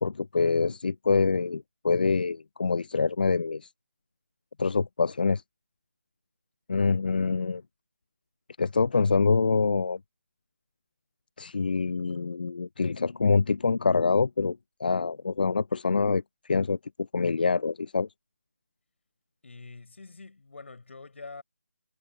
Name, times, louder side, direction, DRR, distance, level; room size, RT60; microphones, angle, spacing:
voice 1, 0.0-3.7 4.6-5.4 6.7-7.6 8.6-10.0 11.4-16.8 17.1-18.1, left 4 dB, 35° left, 0.5 m, -25 dB
voice 2, 19.4-21.4, left 3 dB, 55° left, 5.8 m, -45 dB
figure-of-eight pair, 170°, 8 cm